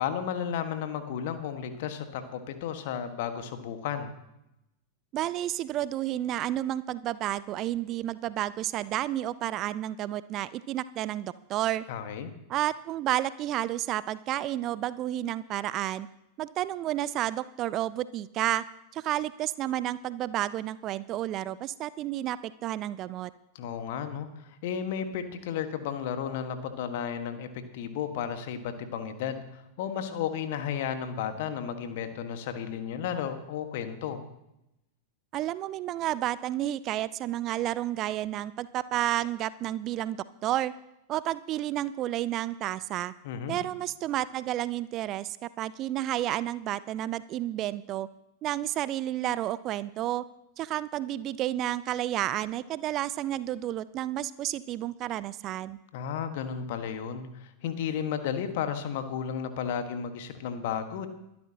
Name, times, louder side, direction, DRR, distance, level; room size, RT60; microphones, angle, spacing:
voice 1, 0.0-4.1 11.9-12.3 23.5-34.2 43.2-43.6 55.9-61.1, left 8 dB, 50° left, 8 dB, 1.5 m, -33 dB
voice 2, 5.1-11.8 12.5-16.1 16.4-18.6 18.9-23.3 35.3-40.7 41.1-43.1 43.5-48.1 48.4-50.2 50.6-55.8, right 13 dB, 35° right, 18 dB, 0.5 m, -31 dB
22.0 x 12.0 x 2.9 m, 0.87 s
figure-of-eight pair, 90°, 0 cm